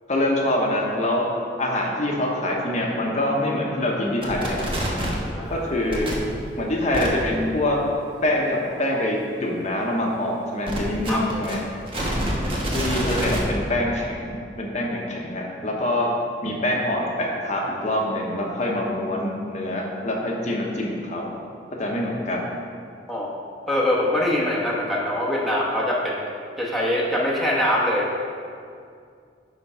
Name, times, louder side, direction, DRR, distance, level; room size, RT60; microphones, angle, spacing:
voice 1, 0.1-1.3 1.6-4.7 5.5-6.1 6.6-7.8 8.2-11.6 12.7-16.1 16.4-21.3 21.8-22.5, left 1 dB, 40° left, -2 dB, 1.0 m, -25 dB
sound 1, 4.2-5.2 5.9-6.2 6.9-7.1 10.7-13.4, equal, 30° right, 1.2 m, -26 dB
voice 2, 5.2-5.7 11.1-11.4 23.1-23.3 23.7-26.3 26.6-28.1, left 1 dB, ahead, -5 dB, 1.1 m, -23 dB
10.0 x 3.9 x 5.6 m, 2.3 s
head